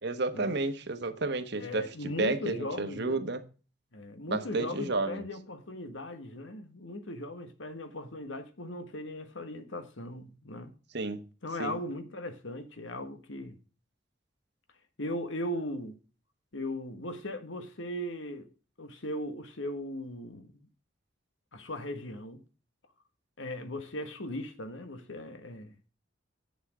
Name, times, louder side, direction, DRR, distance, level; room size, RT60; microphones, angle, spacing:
voice 1, 0.0-1.8 2.2-3.4 4.3-5.2 10.9-11.2 11.6-11.8, right 3 dB, 60° right, 1.2 m, -31 dB
voice 2, 1.5-3.2 3.9-10.7 11.4-13.6 15.0-16.0 16.5-18.5 18.8-20.7 21.5-22.4 23.4-25.8, left 1 dB, 85° left, 1.5 m, -38 dB
8.7 x 7.0 x 4.8 m
head